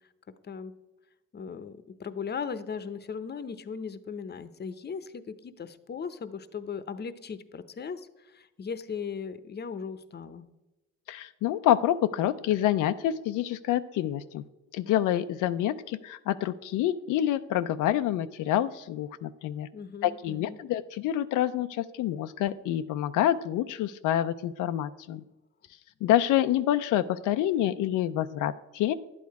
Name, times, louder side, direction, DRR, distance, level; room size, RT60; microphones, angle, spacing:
voice 1, 1.3-10.5 19.7-20.6, left 6 dB, 35° left, 13 dB, 0.7 m, -38 dB
voice 2, 11.1-14.4 14.7-19.7 20.0-25.2 26.0-28.9, left 12 dB, 85° left, 11 dB, 0.5 m, -27 dB
11.5 x 8.5 x 4.7 m, 1.0 s
cardioid pair, 90°, 30 cm